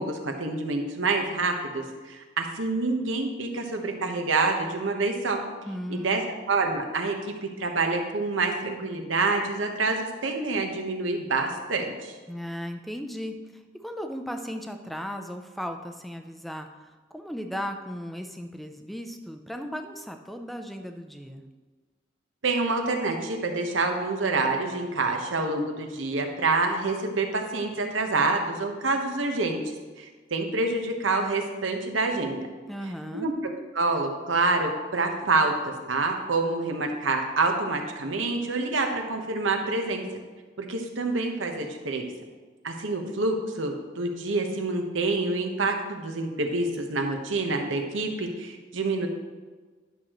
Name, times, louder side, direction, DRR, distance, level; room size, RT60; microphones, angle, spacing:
voice 1, 0.0-5.4 5.9-6.2 6.5-7.2 7.6-12.1 22.4-29.6 30.0-32.5 33.1-33.3 33.7-40.0 40.6-42.1 42.6-49.1, right 3 dB, 85° right, 3 dB, 1.1 m, -27 dB
voice 2, 5.7-6.3 12.3-21.4 32.7-33.3, equal, ahead, 6 dB, 0.5 m, -36 dB
11.0 x 6.4 x 3.0 m, 1.4 s
head